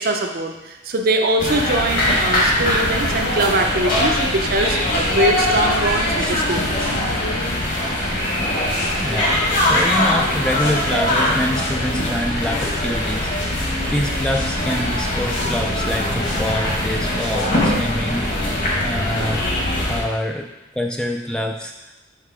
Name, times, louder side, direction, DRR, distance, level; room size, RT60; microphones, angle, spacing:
voice 1, 0.0-4.8 5.1-6.9, right 2 dB, 50° right, 4 dB, 0.6 m, -22 dB
sound 1, 1.4-20.0, left 1 dB, 50° left, 1.4 m, -21 dB
sound 2, 4.8-5.1 5.5-6.0 6.5-7.0 8.7-8.9 9.5-9.8 10.4-10.7 11.3-11.7 12.3-12.7 13.3-13.6 14.2-14.6 15.2-15.4 16.2-16.5 17.1-17.5, left 2 dB, 85° left, 2.2 m, -38 dB
voice 2, 9.0-20.5 20.7-21.9, left 1 dB, 5° left, 2 dB, 0.3 m, -26 dB
6.6 x 3.3 x 4.7 m, 1.0 s
head